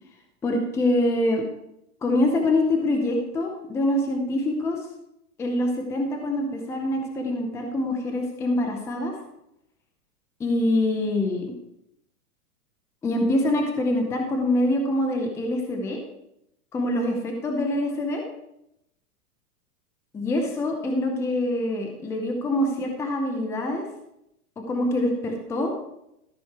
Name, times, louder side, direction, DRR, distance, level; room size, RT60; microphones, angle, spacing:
voice 1, 0.4-1.4 2.0-4.8 5.4-9.1 10.4-11.5 13.0-16.0 16.7-18.2 20.1-23.9 24.7-25.7, left 1 dB, 5° left, 3 dB, 0.6 m, -25 dB
13.5 x 6.3 x 4.7 m, 0.82 s
supercardioid pair, 155°, 47 cm